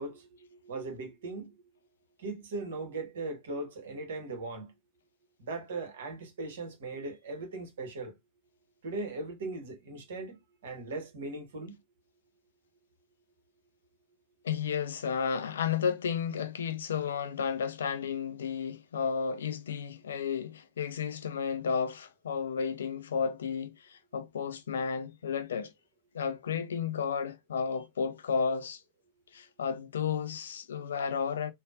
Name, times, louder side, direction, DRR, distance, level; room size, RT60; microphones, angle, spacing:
voice 1, 0.0-1.5 2.2-4.7 5.4-8.1 8.8-11.7, right 3 dB, 60° right, 1.1 m, -39 dB
voice 2, 14.4-25.7 26.1-28.8 29.3-31.5, left 6 dB, 65° left, 0.4 m, -32 dB
3.5 x 2.2 x 2.4 m
figure-of-eight pair, 90°, 0 cm